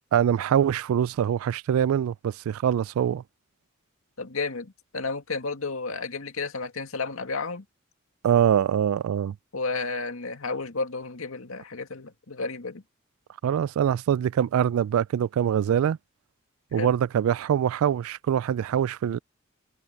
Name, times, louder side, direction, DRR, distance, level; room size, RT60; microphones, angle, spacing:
voice 1, 0.1-3.2 8.2-9.3 13.4-16.0 16.7-19.2, right 9 dB, 90° right, 0.3 m, -24 dB
voice 2, 4.2-7.6 9.5-12.8 16.7-16.9, left 3 dB, 85° left, 2.2 m, -32 dB
head